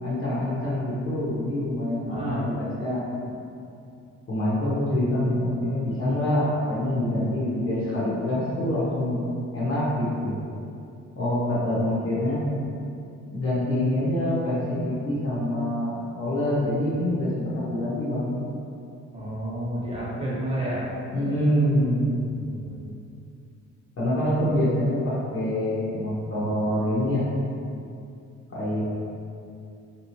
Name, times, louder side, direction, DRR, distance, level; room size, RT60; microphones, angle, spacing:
voice 1, 0.0-3.0 4.3-9.2 9.5-10.4 11.2-12.4 13.3-17.3 17.5-18.4 21.1-22.0 24.0-27.3 28.5-28.8, left 1 dB, 45° left, -8 dB, 1.0 m, -25 dB
voice 2, 2.1-2.4 19.1-20.9 21.6-21.7 22.1-22.9, right 1 dB, 20° right, -8 dB, 0.7 m, -31 dB
2.9 x 2.0 x 2.9 m, 2.6 s
cardioid pair, 90°, 30 cm